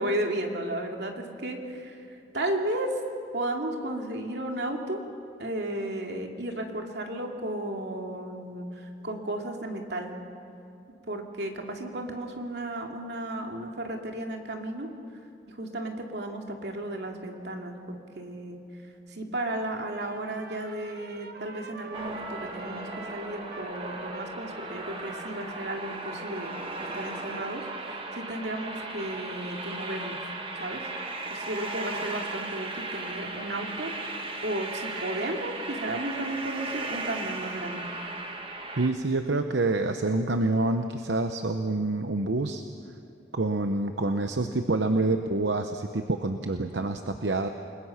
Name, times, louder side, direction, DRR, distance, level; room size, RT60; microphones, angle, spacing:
voice 1, 0.0-3.0 3.3-5.0 5.4-10.1 11.1-14.9 15.5-18.6 19.1-26.5 26.8-30.2 30.6-30.8 31.3-37.9, right 1 dB, 70° right, 2 dB, 2.5 m, -34 dB
Trumpet, 19.8-26.5, right 3 dB, 55° right, 1.4 m, -46 dB
sound 1, 21.9-38.9, right 2 dB, 30° right, 1.7 m, -36 dB
voice 2, 38.8-42.6 43.3-47.5, right 2 dB, 85° right, 7 dB, 0.9 m, -27 dB
29.0 x 21.0 x 5.9 m, 2.6 s
head